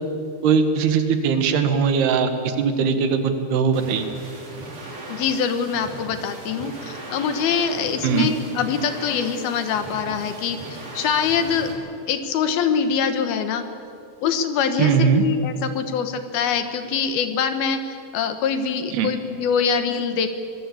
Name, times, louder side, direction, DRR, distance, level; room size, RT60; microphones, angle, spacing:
voice 1, 0.4-4.0 8.0-8.3 14.8-15.2 18.9-19.1, right 6 dB, 75° right, 8 dB, 3.6 m, -20 dB
sound 1, 3.7-11.7, right 2 dB, 50° right, 5.9 m, -37 dB
voice 2, 5.1-11.7 12.1-13.7 14.2-20.3, left 6 dB, 70° left, 8 dB, 3.1 m, -24 dB
25.5 x 20.5 x 8.5 m, 2.5 s
omnidirectional pair, 4.7 m